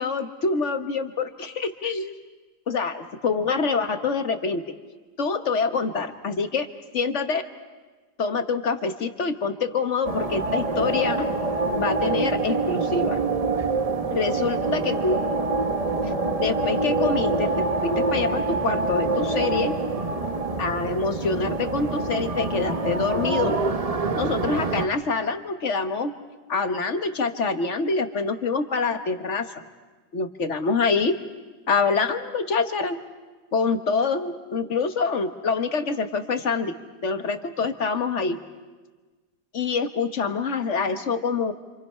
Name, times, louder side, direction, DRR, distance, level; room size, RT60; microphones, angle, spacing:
voice 1, 0.0-2.1 2.7-4.6 5.2-6.7 6.9-7.4 8.2-11.3 11.7-13.2 14.1-15.2 16.0-16.1 16.4-19.7 20.6-23.6 24.2-26.1 26.5-29.6 30.1-31.1 31.7-33.0 33.5-36.7 37.0-38.4 39.5-41.5, left 4 dB, 50° left, 8 dB, 1.4 m, -26 dB
sound 1, 10.0-24.9, right 3 dB, 30° right, 0.7 m, -26 dB
28.5 x 27.0 x 5.6 m, 1.3 s
omnidirectional pair, 1.7 m